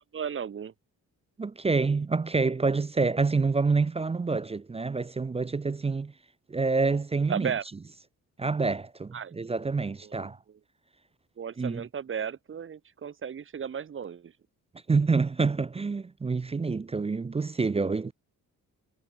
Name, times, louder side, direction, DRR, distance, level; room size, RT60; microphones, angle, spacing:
voice 1, 0.1-0.7 7.3-7.6 9.1-9.3 10.0-10.3 11.4-14.3, right 7 dB, 35° right, 1.0 m, -34 dB
voice 2, 1.4-6.1 6.5-7.5 8.4-10.4 11.6-11.9 14.9-18.1, right 4 dB, 15° right, 0.4 m, -27 dB
wide cardioid pair, 155°, 36 cm